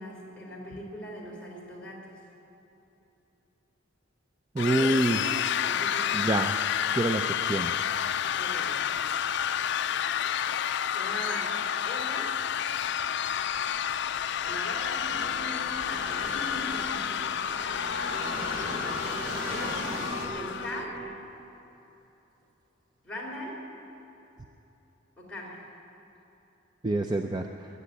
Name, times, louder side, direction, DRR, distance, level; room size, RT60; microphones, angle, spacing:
voice 1, 0.0-2.1 4.6-6.3 8.4-8.9 10.9-11.6 11.9-12.3 14.4-17.2 17.5-18.0 19.5-20.0 20.3-21.1 23.0-23.6 25.2-25.6, left 1 dB, 5° left, -5 dB, 3.6 m, -40 dB
voice 2, 4.5-5.2 6.1-6.6 6.9-7.8 26.8-27.7, right 2 dB, 20° right, 5 dB, 0.4 m, -26 dB
sound 1, 4.6-20.9, left 9 dB, 55° left, 0.4 m, -30 dB
sound 2, 12.7-20.3, equal, 75° right, 3.2 m, -40 dB
sound 3, 15.0-21.2, right 2 dB, 40° right, 1.1 m, -43 dB
20.0 x 7.0 x 9.4 m, 3.0 s
head